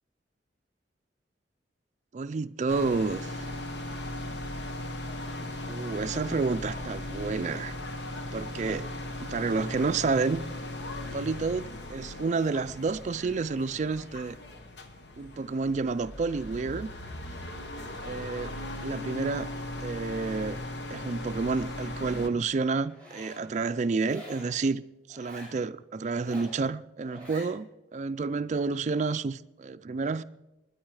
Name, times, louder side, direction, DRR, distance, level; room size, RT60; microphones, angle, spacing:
voice 1, 2.1-3.5 5.7-7.7 8.3-8.9 9.2-10.4 11.1-14.4 15.2-16.9 18.0-18.6 18.8-19.5 19.8-20.6 20.9-24.8 25.1-30.2, right 4 dB, 40° right, 0.4 m, -30 dB
sound 1, 2.7-22.3, left 1 dB, 75° left, 1.3 m, -38 dB
Zipper (clothing), 22.8-23.4 24.0-24.5 25.1-25.5 26.1-26.6 27.0-27.5, left 1 dB, 10° left, 6.1 m, -46 dB
20.5 x 9.6 x 4.8 m
head